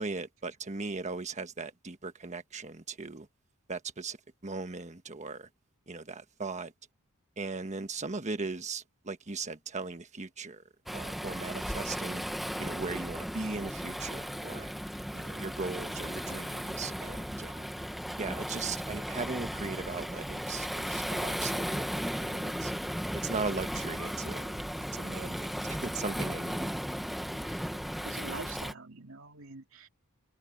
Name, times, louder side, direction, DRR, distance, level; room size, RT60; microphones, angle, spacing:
voice 1, 0.0-3.3 3.7-4.2 4.4-5.5 5.9-6.7 7.4-10.6 10.9-12.2 12.6-14.7 15.1-17.6 18.2-22.7 23.1-24.6 24.9-26.6, right 3 dB, 35° right, 1.4 m, -38 dB
Waves surf, 10.9-28.7, equal, ahead, 1.0 m, -36 dB
voice 2, 27.3-29.9, right 3 dB, 65° right, 2.6 m, -46 dB
head